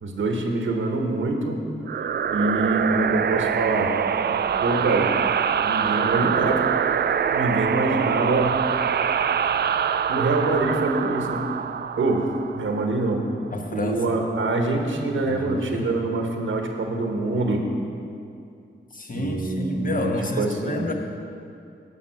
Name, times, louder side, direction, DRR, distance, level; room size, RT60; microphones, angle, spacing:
voice 1, 0.0-1.6 2.0-3.9 4.3-5.1 5.6-6.6 7.3-8.6 10.1-11.5 12.0-12.2 12.5-13.2 13.7-17.6 19.1-20.9, right 2 dB, 75° right, 3 dB, 1.1 m, -25 dB
sound 1, 1.9-13.2, right 7 dB, 55° right, 0.4 m, -24 dB
voice 2, 13.5-14.2 15.2-16.0 18.9-20.9, left 2 dB, 45° left, 2 dB, 1.3 m, -30 dB
11.0 x 5.5 x 5.7 m, 2.5 s
cardioid pair, 55°, 20 cm